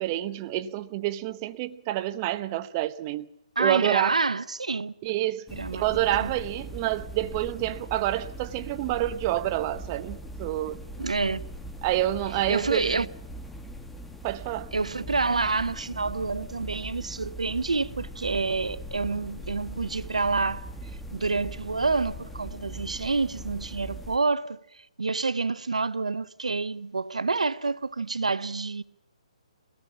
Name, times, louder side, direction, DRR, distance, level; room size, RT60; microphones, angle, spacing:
voice 1, 0.0-3.3 3.6-4.1 5.0-5.4 5.7-10.8 11.8-13.0 14.2-14.7, right 14 dB, 30° right, 1.0 m, -28 dB
voice 2, 3.6-4.9 5.5-5.8 6.2-6.3 11.0-11.4 12.5-13.1 14.7-20.7 21.1-28.8, right 3 dB, 85° right, 0.7 m, -28 dB
sound 1, 5.5-24.2, right 1 dB, 5° left, 1.3 m, -40 dB
23.0 x 18.0 x 7.3 m
hypercardioid pair, 140°, 4 cm